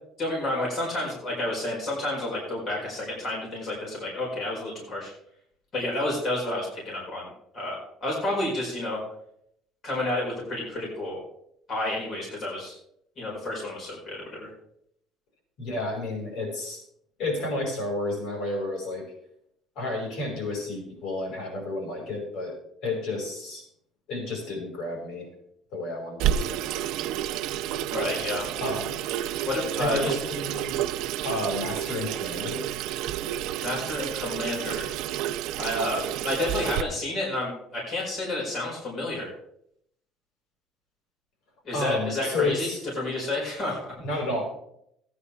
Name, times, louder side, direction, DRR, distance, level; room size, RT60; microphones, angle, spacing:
voice 1, 0.2-5.1 5.7-9.0 9.8-11.2 11.7-12.7 13.2-14.5 27.8-28.5 29.4-30.2 33.6-34.9 35.6-39.3 41.6-42.7 43.0-43.9, left 1 dB, 35° left, -4 dB, 4.7 m, -30 dB
voice 2, 15.6-16.8 17.2-19.0 19.8-22.5 22.8-23.6 24.1-25.3 25.7-26.6 28.6-29.0 29.8-30.8 31.2-32.8 41.7-42.8 44.0-44.4, left 2 dB, 65° left, 0 dB, 5.4 m, -31 dB
Water tap faucet / Sink (filling or washing), 26.2-36.8, right 11 dB, 80° right, 0.5 m, -30 dB
17.0 x 9.8 x 3.5 m, 0.72 s
cardioid pair, 170°, 0 cm